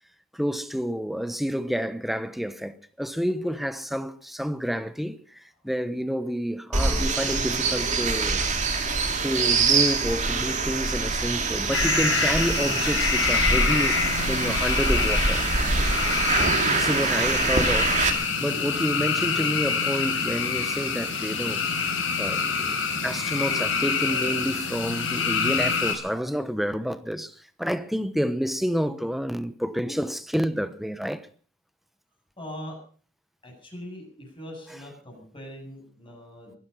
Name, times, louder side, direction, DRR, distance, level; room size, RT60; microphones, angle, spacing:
voice 1, 0.3-8.4 9.2-15.4 16.7-18.0 18.4-21.6 22.2-31.3, equal, ahead, 1.0 m, -29 dB
sound 1, 6.7-18.1, right 4 dB, 40° right, 2.6 m, -25 dB
sound 2, 11.7-25.9, left 5 dB, 85° left, 5.0 m, -26 dB
voice 2, 32.4-32.8 33.4-36.6, equal, 30° left, 7.9 m, -41 dB
22.5 x 11.0 x 5.6 m
head